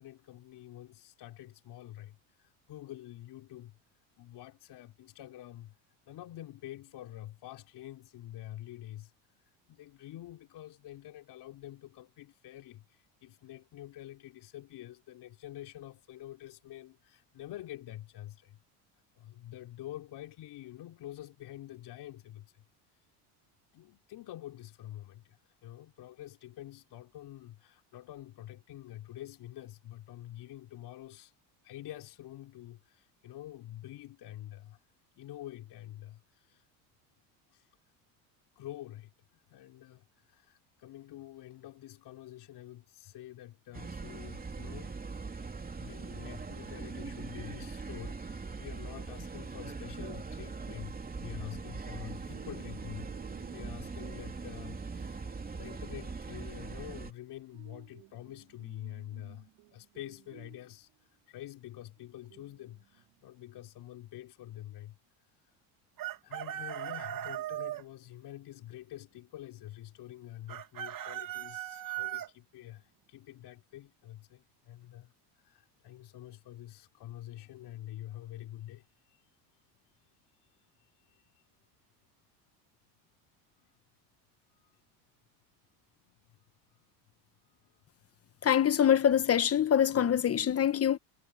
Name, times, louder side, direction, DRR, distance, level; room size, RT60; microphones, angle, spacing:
voice 1, 0.0-3.8 4.2-5.8 6.1-9.1 9.7-18.6 19.2-22.6 22.9-23.0 23.7-31.3 31.6-34.8 35.2-36.7 37.5-37.8 38.6-45.0 45.8-65.0 66.2-79.3 80.8-81.4 83.6-83.8 84.5-84.8 86.0-86.4 86.7-86.8 87.4-87.8 88.4-88.5, left 13 dB, 55° left, 4.0 m, -47 dB
sound 1, 43.7-57.1, right 4 dB, 20° right, 3.1 m, -41 dB
sound 2, 52.3-61.2 62.0-63.3, right 23 dB, 75° right, 5.8 m, -58 dB
Chicken rooster, 66.0-67.8 70.5-72.3, right 12 dB, 45° right, 2.4 m, -38 dB
voice 2, 88.4-91.0, left 9 dB, 30° left, 1.2 m, -25 dB
supercardioid pair, 105°, 47 cm